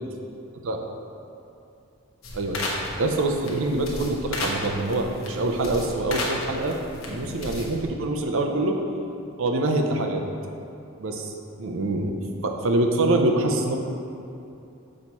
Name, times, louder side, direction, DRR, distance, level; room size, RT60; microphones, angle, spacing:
voice 1, 0.5-0.9 2.3-2.6 3.0-6.8 7.1-8.8 9.4-10.2 11.0-11.3 11.6-12.1 12.4-13.8, right 2 dB, 60° right, 3 dB, 0.5 m, -25 dB
sound 1, 2.2-7.9, left 2 dB, 65° left, 1.0 m, -33 dB
6.3 x 5.3 x 3.0 m, 2.7 s
head